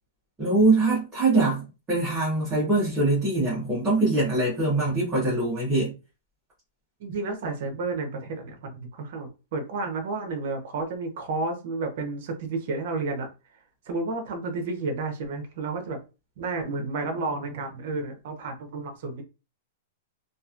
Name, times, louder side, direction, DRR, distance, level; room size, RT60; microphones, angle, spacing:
voice 1, 0.4-5.9, right 2 dB, 10° right, 0.9 m, -23 dB
voice 2, 7.0-13.3 13.9-16.0 16.4-19.2, right 3 dB, 45° right, 0.8 m, -31 dB
2.9 x 2.4 x 2.4 m
supercardioid pair, 175°, 0 cm